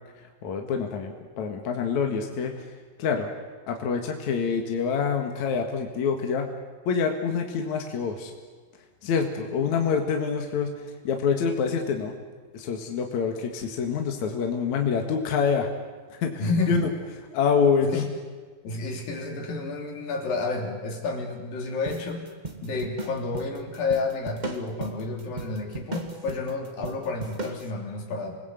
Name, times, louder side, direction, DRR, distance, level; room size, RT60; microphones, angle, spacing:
voice 1, 0.2-2.7 3.0-3.3 3.7-6.5 6.9-8.3 9.0-12.2 12.5-15.7 16.1-16.9 17.3-18.1, left 6 dB, 60° left, 3 dB, 2.9 m, -26 dB
voice 2, 16.4-16.9 17.8-18.1 18.6-22.3 22.6-28.4, left 3 dB, 75° left, 1 dB, 5.1 m, -30 dB
sound 1, 21.8-27.7, right 2 dB, 50° right, 0.5 m, -37 dB
28.0 x 20.0 x 8.2 m, 1.4 s
omnidirectional pair, 4.1 m